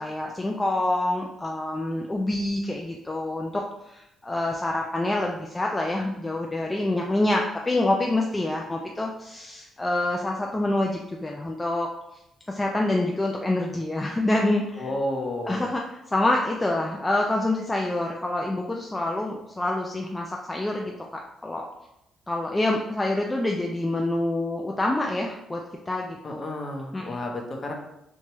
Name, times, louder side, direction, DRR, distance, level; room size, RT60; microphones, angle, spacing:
voice 1, 0.0-11.9 12.5-14.9 15.5-21.1 21.4-21.6 22.3-26.4 26.9-27.2, left 2 dB, 15° left, 0 dB, 0.3 m, -26 dB
voice 2, 14.8-15.8 26.2-27.7, left 1 dB, 35° left, 1 dB, 0.7 m, -31 dB
3.0 x 2.2 x 2.9 m, 0.85 s
cardioid pair, 85°, 0 cm